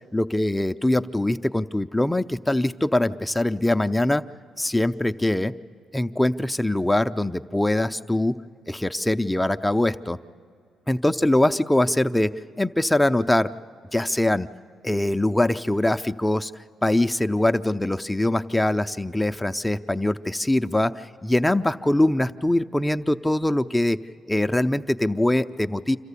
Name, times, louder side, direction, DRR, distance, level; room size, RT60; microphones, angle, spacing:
voice 1, 0.1-4.2 4.6-5.5 5.9-8.3 8.7-10.2 10.9-13.5 13.9-14.5 14.8-24.0 24.3-26.0, left 1 dB, 10° left, 9 dB, 0.5 m, -23 dB
27.0 x 14.0 x 8.3 m, 2.3 s
cardioid pair, 90°, 0 cm